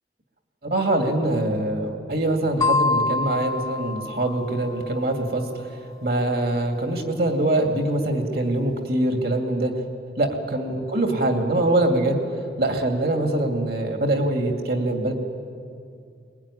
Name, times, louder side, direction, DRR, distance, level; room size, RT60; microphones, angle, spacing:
voice 1, 0.6-9.7 10.2-12.2 12.6-15.1, right 1 dB, 55° right, 3 dB, 2.6 m, -23 dB
sound 1, 2.6-5.1, left 3 dB, 20° left, 0.7 m, -26 dB
23.0 x 21.5 x 10.0 m, 2.4 s
head